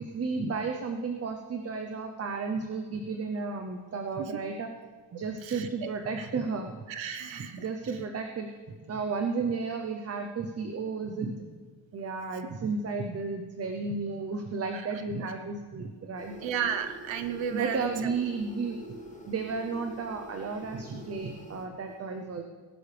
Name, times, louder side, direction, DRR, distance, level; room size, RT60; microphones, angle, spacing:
voice 1, 0.0-4.7 5.1-6.7 7.3-11.4 11.9-16.3 17.5-18.8 19.3-22.4, right 4 dB, 30° right, 5 dB, 0.7 m, -33 dB
voice 2, 5.4-5.9 6.2-6.3 6.9-7.6 14.7-14.8 15.2-15.3 16.4-18.1, right 7 dB, 70° right, 9 dB, 1.1 m, -33 dB
sound 1, 16.2-21.7, right 1 dB, 15° left, 1.4 m, -46 dB
19.0 x 11.5 x 3.4 m, 1.5 s
wide cardioid pair, 175°, 47 cm